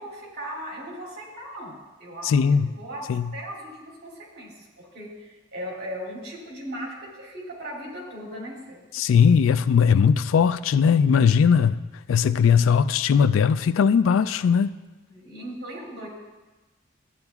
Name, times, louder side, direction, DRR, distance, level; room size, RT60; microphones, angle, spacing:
voice 1, 0.0-8.8 15.1-16.1, equal, 55° right, 2.7 m, -38 dB
voice 2, 2.2-2.7 3.1-3.3 8.9-11.8 12.1-14.7, left 6 dB, 85° left, 0.3 m, -19 dB
13.5 x 8.9 x 2.4 m
head